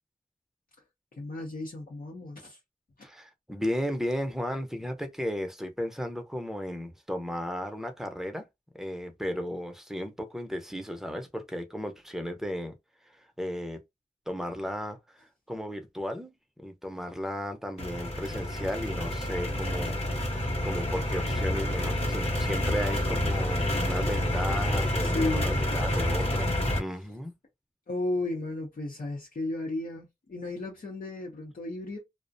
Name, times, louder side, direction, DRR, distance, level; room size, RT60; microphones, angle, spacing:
voice 1, 1.1-2.6 3.0-3.1 25.0-25.7 27.9-32.0, left 2 dB, 75° left, 0.7 m, -34 dB
voice 2, 3.0-8.5 8.8-12.7 13.1-13.8 14.3-20.0 20.2-27.3, equal, 5° right, 0.6 m, -35 dB
sound 1, 17.8-26.8, left 1 dB, 45° left, 0.9 m, -28 dB
2.4 x 2.1 x 2.6 m
wide cardioid pair, 65°, 15 cm